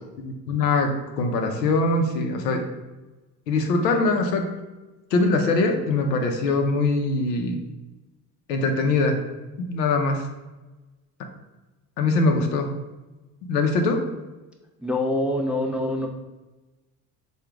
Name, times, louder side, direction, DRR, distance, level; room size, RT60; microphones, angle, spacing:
voice 1, 0.2-2.6 3.5-4.5 5.1-7.6 8.5-9.2 9.7-10.3 12.0-12.7 13.5-14.0, left 3 dB, 85° left, 3 dB, 0.7 m, -22 dB
voice 2, 14.8-16.1, left 1 dB, 5° right, 1 dB, 0.4 m, -25 dB
3.7 x 2.4 x 4.6 m, 1.1 s
hypercardioid pair, 70°, 48 cm